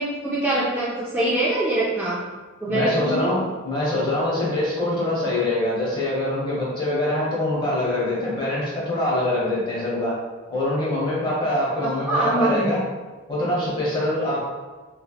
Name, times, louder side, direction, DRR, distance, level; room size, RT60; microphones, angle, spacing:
voice 1, 0.0-2.2 2.6-3.3 12.1-12.7, right 1 dB, 10° right, -8 dB, 0.3 m, -23 dB
voice 2, 2.7-10.1 10.5-12.8 13.3-14.4, left 1 dB, 20° left, -6 dB, 0.9 m, -24 dB
3.0 x 2.8 x 2.3 m, 1.3 s
head